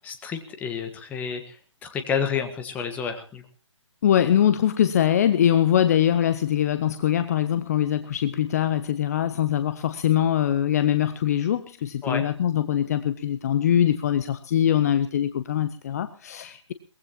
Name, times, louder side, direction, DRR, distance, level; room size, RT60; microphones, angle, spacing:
voice 1, 0.0-3.4 12.0-12.3, left 6 dB, 10° left, 6 dB, 1.3 m, -30 dB
voice 2, 4.0-16.7, left 10 dB, 30° left, 11 dB, 0.8 m, -22 dB
22.5 x 18.5 x 2.9 m, 0.39 s
figure-of-eight pair, 150°, 16 cm